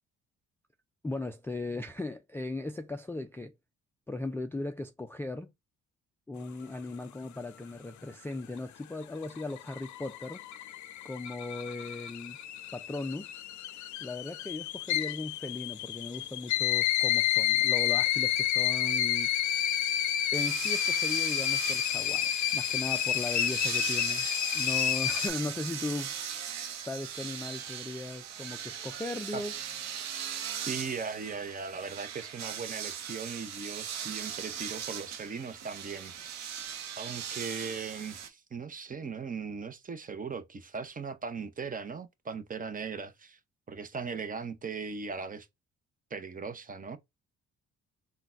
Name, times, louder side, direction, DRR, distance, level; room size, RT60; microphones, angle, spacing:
voice 1, 1.0-3.5 4.1-5.5 6.3-10.6 11.0-12.4 12.7-13.3 13.7-19.7 20.3-24.3 24.5-26.2 26.8-29.5, left 2 dB, 10° left, 0.3 m, -38 dB
sound 1, 9.0-25.3, left 11 dB, 70° left, 0.5 m, -30 dB
sound 2, 20.3-38.3, right 8 dB, 60° right, 0.8 m, -39 dB
voice 2, 30.7-36.4 37.0-43.4 43.7-45.5 46.1-47.0, right 5 dB, 30° right, 0.6 m, -38 dB
3.8 x 2.3 x 2.4 m
cardioid pair, 90°, 30 cm